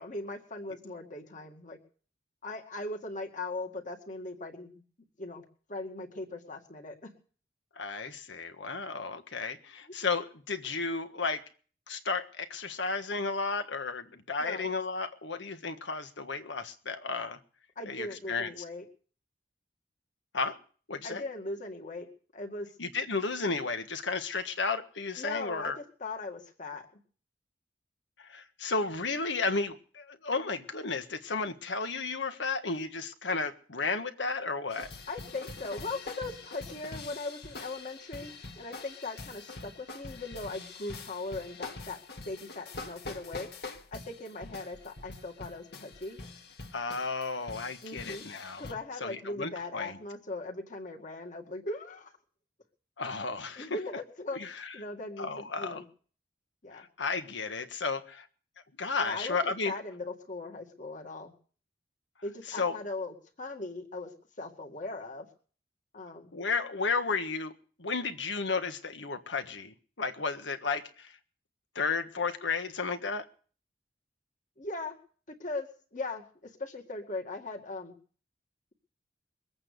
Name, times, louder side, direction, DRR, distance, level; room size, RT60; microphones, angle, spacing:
voice 1, 0.0-1.8 2.4-4.8 5.2-7.1 14.4-14.7 17.8-18.8 21.0-22.1 22.3-22.7 25.2-26.9 35.1-42.0 42.3-43.5 43.9-46.2 47.8-48.2 48.6-52.1 53.6-54.4 54.7-55.3 55.6-55.8 56.6-56.9 59.0-61.3 62.2-64.1 64.4-65.3 65.9-66.3 74.6-75.0 75.4-77.9, left 2 dB, 45° left, 3 dB, 2.1 m, -39 dB
voice 2, 7.8-11.4 11.9-17.4 17.9-18.5 20.3-20.6 20.9-21.2 22.8-25.8 28.2-34.9 46.7-48.7 49.0-50.0 53.0-53.7 54.3-54.7 55.2-55.8 56.7-58.3 58.8-59.7 62.5-62.7 66.3-67.5 67.8-71.2 71.7-73.2, left 4 dB, 85° left, 8 dB, 1.5 m, -33 dB
sound 1, 34.7-48.7, left 3 dB, 65° left, 1.9 m, -45 dB
22.0 x 8.7 x 6.8 m, 0.43 s
head